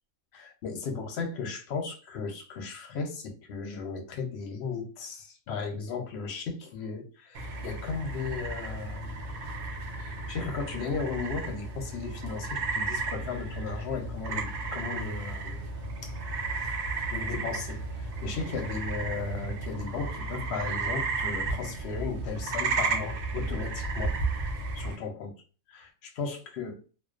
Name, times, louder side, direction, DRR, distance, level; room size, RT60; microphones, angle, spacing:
voice 1, 0.3-9.3 10.0-16.2 16.6-16.8 17.1-24.2 24.7-25.3 25.7-26.8, left 5 dB, 60° left, 0.7 m, -36 dB
sound 1, 7.3-25.0, right 3 dB, 65° right, 0.5 m, -33 dB
2.3 x 2.3 x 2.4 m
omnidirectional pair, 1.5 m